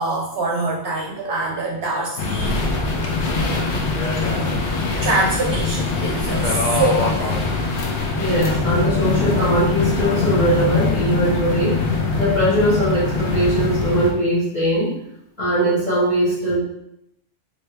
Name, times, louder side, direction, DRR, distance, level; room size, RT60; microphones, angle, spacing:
voice 1, 0.0-2.6 5.0-7.4, right 2 dB, 60° right, -2 dB, 0.8 m, -24 dB
sound 1, 2.2-14.1, left 4 dB, 70° left, 1.0 m, -22 dB
sound 2, 2.4-10.1, left 2 dB, 55° left, 0.5 m, -29 dB
voice 2, 8.2-11.8 12.2-14.9 15.4-16.6, right 1 dB, 35° left, -8 dB, 1.4 m, -20 dB
3.3 x 2.8 x 3.3 m, 0.77 s
omnidirectional pair, 1.3 m